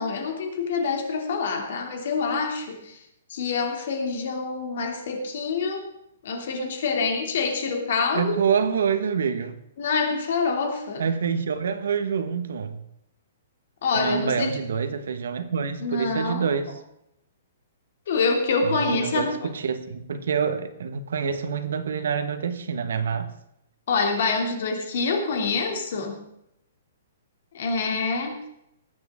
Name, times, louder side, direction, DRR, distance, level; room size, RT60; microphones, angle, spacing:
voice 1, 0.0-3.0 3.3-5.9 6.2-8.4 9.8-11.0 13.8-14.5 15.8-16.5 18.1-19.5 23.9-26.2 27.5-28.4, left 4 dB, 50° left, 3 dB, 2.8 m, -26 dB
voice 2, 8.1-9.5 11.0-12.8 13.9-16.8 18.6-23.3, right 6 dB, 70° right, 9 dB, 1.5 m, -26 dB
20.5 x 8.8 x 3.7 m, 0.80 s
hypercardioid pair, 180°, 0 cm